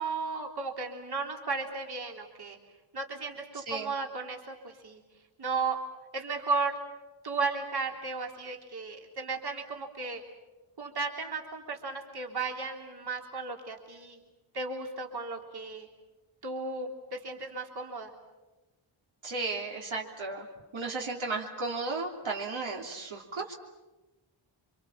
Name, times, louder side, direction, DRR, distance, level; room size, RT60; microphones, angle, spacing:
voice 1, 0.0-2.6 2.9-5.0 5.4-5.8 6.1-6.7 7.2-10.2 10.8-14.2 14.5-15.9 16.4-18.1, right 4 dB, 50° right, 2 dB, 3.5 m, -34 dB
voice 2, 19.2-20.5 20.7-23.5, right 3 dB, 70° right, -1 dB, 3.3 m, -34 dB
29.0 x 25.5 x 7.4 m, 1.1 s
wide cardioid pair, 145°, 49 cm